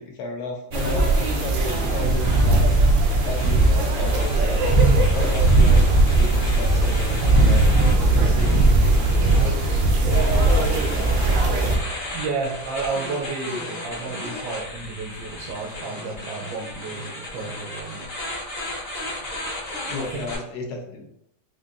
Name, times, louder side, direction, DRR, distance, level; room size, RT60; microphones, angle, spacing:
voice 1, 0.0-2.6 3.2-4.6 5.1-9.6 19.9-21.1, left 3 dB, 70° left, 1 dB, 1.1 m, -33 dB
sound 1, 0.7-20.4, left 1 dB, 35° left, 0.8 m, -35 dB
sound 2, 0.7-11.8, right 2 dB, 90° right, 1.4 m, -18 dB
voice 2, 9.9-11.1 12.1-18.0 20.0-20.3, right 3 dB, 70° right, -1 dB, 1.0 m, -31 dB
4.4 x 2.5 x 2.5 m, 0.78 s
omnidirectional pair, 2.0 m